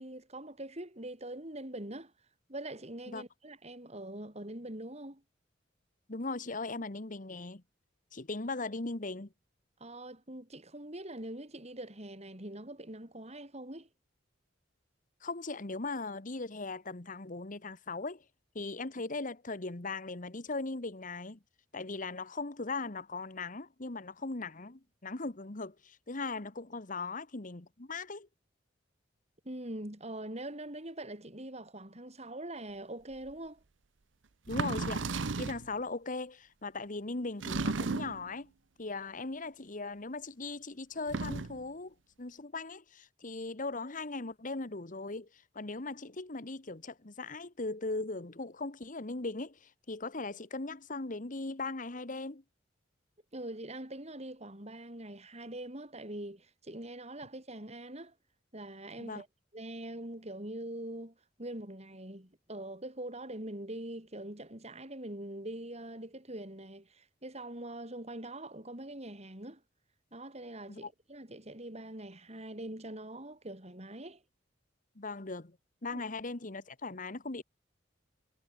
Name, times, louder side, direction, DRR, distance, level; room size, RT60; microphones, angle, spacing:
voice 1, 0.0-2.1 2.5-5.2 9.8-13.9 29.4-33.6 53.3-58.1 58.5-59.3 59.5-69.6 70.1-74.2 75.9-76.0, right 1 dB, 35° right, 6.5 m, -43 dB
voice 2, 6.1-7.6 8.1-9.3 15.2-18.2 18.5-21.4 21.7-28.3 34.5-38.5 38.8-45.3 45.5-52.4 59.0-59.2 70.7-70.9 74.9-75.6 75.8-77.4, left 3 dB, 45° left, 1.4 m, -39 dB
sound 1, 33.3-33.4 34.5-35.7 37.4-38.3 41.0-41.6, right 3 dB, 90° right, 0.9 m, -34 dB
head